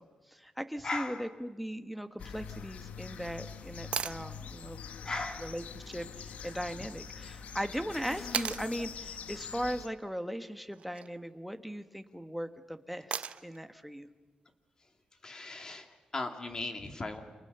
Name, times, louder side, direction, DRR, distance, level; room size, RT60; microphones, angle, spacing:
voice 1, 0.0-4.8 5.4-14.1, equal, ahead, 8 dB, 1.4 m, -39 dB
voice 2, 0.8-1.2 5.0-5.5 15.2-17.2, left 2 dB, 30° left, 6 dB, 2.6 m, -37 dB
sound 1, 2.2-9.9, left 6 dB, 90° left, 1.3 m, -44 dB
sound 2, 3.9-4.2 6.5-6.6 8.3-8.7 10.7-11.1 13.1-13.6 15.7-15.8, right 7 dB, 60° right, 0.8 m, -35 dB
30.0 x 27.5 x 6.9 m, 1.4 s
wide cardioid pair, 145°, 2 cm